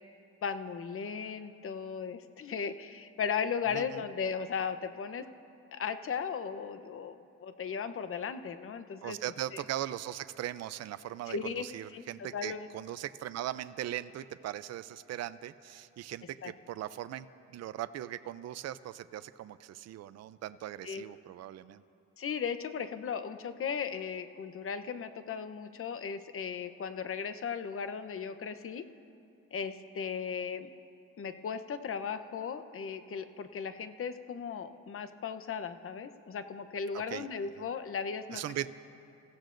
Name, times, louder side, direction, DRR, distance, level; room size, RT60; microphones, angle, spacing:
voice 1, 0.4-5.2 5.7-9.2 9.5-9.6 11.3-11.7 11.9-12.0 12.3-12.7 16.4-16.5 20.8-21.0 22.2-28.8 29.5-30.7 31.2-38.4, left 6 dB, 45° left, 10 dB, 0.8 m, -36 dB
voice 2, 3.7-4.0 9.0-21.8 36.9-37.3 37.6-37.7 38.3-38.7, right 12 dB, 60° right, 13 dB, 0.5 m, -39 dB
28.0 x 15.5 x 2.6 m, 2.8 s
cardioid pair, 90°, 30 cm